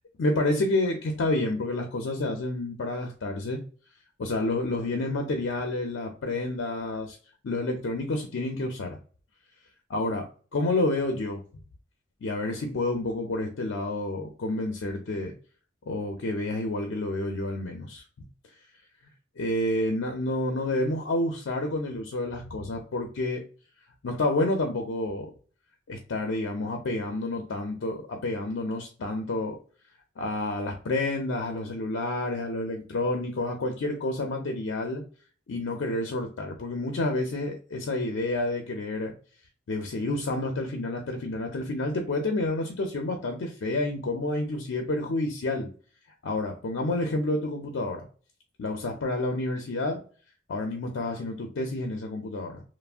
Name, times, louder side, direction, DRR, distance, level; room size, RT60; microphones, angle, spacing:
voice 1, 0.2-3.6 4.2-7.2 7.4-9.0 9.9-10.3 10.5-11.4 12.2-15.3 15.9-18.0 18.5-18.6 19.4-23.4 24.0-25.3 25.9-29.6 30.2-35.0 35.5-39.1 39.7-45.7 46.2-48.1 48.6-50.0 50.5-52.6, left 2 dB, 90° left, 3 dB, 0.5 m, -29 dB
3.3 x 2.0 x 2.4 m, 0.40 s
head